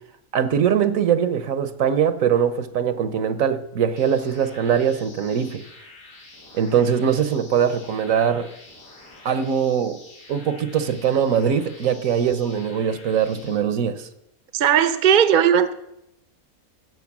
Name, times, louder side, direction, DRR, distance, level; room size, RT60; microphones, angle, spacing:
voice 1, 0.3-5.6 6.5-8.5 9.2-10.0 10.3-14.1, right 8 dB, 70° right, 1.3 m, -22 dB
sound 1, 4.0-13.6, left 2 dB, 85° left, 2.9 m, -47 dB
voice 2, 14.5-15.7, right 8 dB, 45° right, 0.8 m, -17 dB
15.5 x 7.8 x 6.0 m
omnidirectional pair, 1.5 m